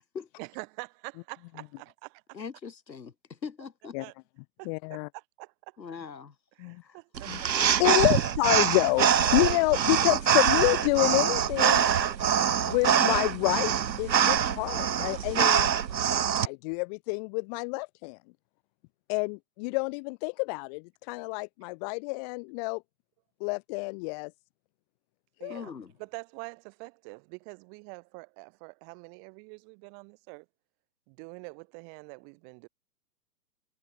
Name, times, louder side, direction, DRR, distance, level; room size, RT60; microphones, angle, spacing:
voice 1, 0.4-1.8 4.0-4.1 4.6-5.8 6.6-7.8 8.1-8.3 25.4-25.7 26.0-30.5 31.1-32.7, right 40 dB or more, 30° right, 4.0 m, -45 dB
voice 2, 2.3-4.0 5.8-6.4 6.8-7.0 25.5-25.9, left 6 dB, 85° left, 5.8 m, -41 dB
voice 3, 4.6-5.1 6.6-6.8 7.3-7.4 7.8-11.8 12.6-15.7 16.4-18.2 19.1-22.8 23.4-24.3 25.4-25.6, left 31 dB, 25° left, 1.4 m, -28 dB
sound 1, 7.2-16.5, right 8 dB, 90° right, 1.3 m, -24 dB
hypercardioid pair, 145°, 50 cm